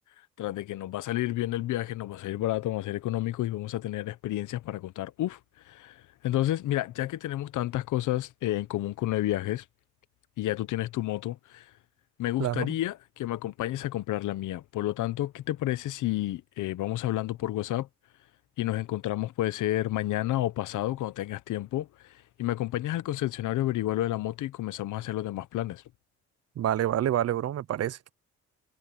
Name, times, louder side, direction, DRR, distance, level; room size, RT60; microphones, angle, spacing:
voice 1, 0.4-5.4 5.6-9.6 10.4-11.7 12.2-17.9 18.6-25.8, left 15 dB, 80° left, 1.1 m, -30 dB
voice 2, 12.4-12.7 26.6-28.1, right 11 dB, 55° right, 0.7 m, -28 dB
cardioid pair, 90°, 30 cm